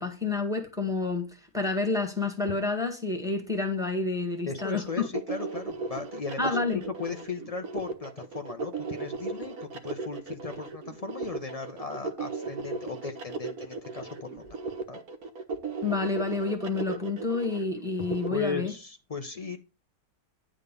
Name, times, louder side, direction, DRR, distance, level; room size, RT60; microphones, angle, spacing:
voice 1, 0.0-5.1 6.4-6.8 15.8-18.7, left 3 dB, ahead, 1.6 m, -29 dB
voice 2, 4.5-14.4 14.9-15.0 18.3-19.6, left 5 dB, 65° left, 0.3 m, -36 dB
sound 1, 4.6-18.3, right 4 dB, 60° right, 1.5 m, -36 dB
10.0 x 3.7 x 6.7 m
omnidirectional pair, 1.9 m